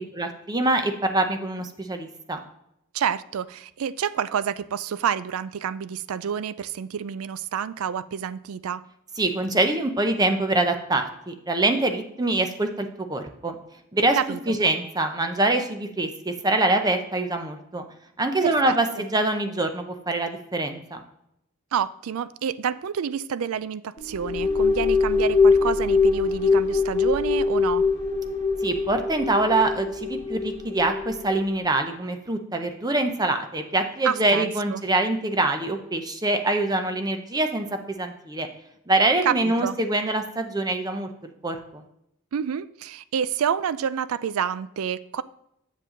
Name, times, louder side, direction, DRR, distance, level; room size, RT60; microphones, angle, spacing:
voice 1, 0.0-2.4 9.2-13.6 13.9-14.2 14.5-17.8 18.2-21.0 28.6-38.5 38.9-41.1 41.4-41.8, right 2 dB, 20° right, 6 dB, 0.7 m, -24 dB
voice 2, 2.9-8.8 14.2-14.6 18.4-19.0 21.7-27.9 34.0-34.8 39.3-39.8 42.3-45.2, right 8 dB, 80° right, 16 dB, 0.4 m, -28 dB
sound 1, 24.0-31.5, left 4 dB, 30° left, 1.7 m, -23 dB
7.5 x 7.3 x 3.8 m, 0.79 s
head